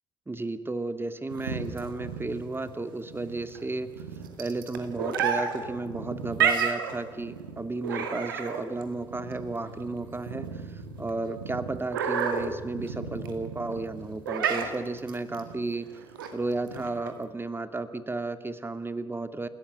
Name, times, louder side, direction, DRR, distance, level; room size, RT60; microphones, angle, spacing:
voice 1, 0.3-3.9 4.4-15.9 16.3-19.5, right 2 dB, 20° right, 10 dB, 2.4 m, -33 dB
sound 1, 1.3-17.3, right 6 dB, 80° right, 2.2 m, -32 dB
30.0 x 17.0 x 7.8 m, 1.4 s
figure-of-eight pair, 45°, 11 cm